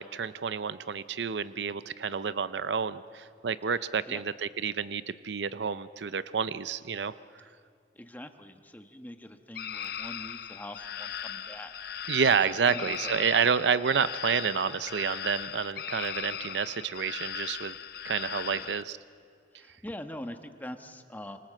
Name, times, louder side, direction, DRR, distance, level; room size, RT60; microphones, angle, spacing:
voice 1, 0.0-7.1 12.1-17.8 18.0-19.0, right 6 dB, 80° right, 15 dB, 0.6 m, -29 dB
voice 2, 7.9-11.7 12.0-13.3 18.4-18.7 19.5-21.4, left 1 dB, 10° left, 7 dB, 1.2 m, -44 dB
sound 1, 9.5-18.8, left 9 dB, 60° left, 0.7 m, -38 dB
26.5 x 26.0 x 7.6 m, 2.3 s
head